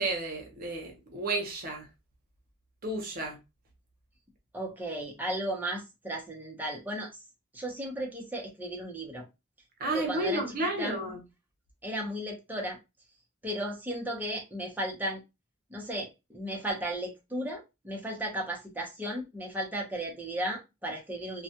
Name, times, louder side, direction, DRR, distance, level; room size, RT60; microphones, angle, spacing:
voice 1, 0.0-1.9 2.8-3.4 9.8-11.2, right 2 dB, 45° right, 0.8 m, -32 dB
voice 2, 4.5-7.1 7.5-9.2 9.9-11.0 11.8-12.8 13.4-15.2 15.7-21.4, right 1 dB, 10° right, 0.7 m, -35 dB
2.3 x 2.2 x 2.7 m
head